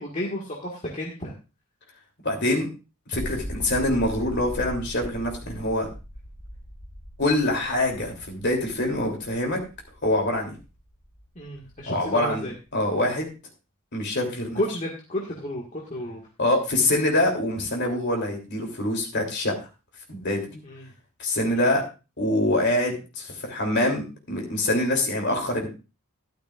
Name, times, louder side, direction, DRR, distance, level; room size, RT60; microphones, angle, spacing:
voice 1, 0.0-1.3 11.4-12.5 14.6-16.2 20.6-20.8 21.5-21.6, left 1 dB, 35° left, -3 dB, 1.9 m, -32 dB
voice 2, 2.2-2.7 3.1-5.9 7.2-9.6 10.0-10.5 11.9-12.4 12.7-13.3 13.9-14.6 16.4-19.5 20.1-20.6 21.2-21.8 22.2-25.7, left 1 dB, 50° left, 2 dB, 3.2 m, -25 dB
sound 1, 3.1-13.2, equal, 10° left, 4.6 m, -40 dB
13.0 x 11.5 x 2.5 m, 0.30 s
head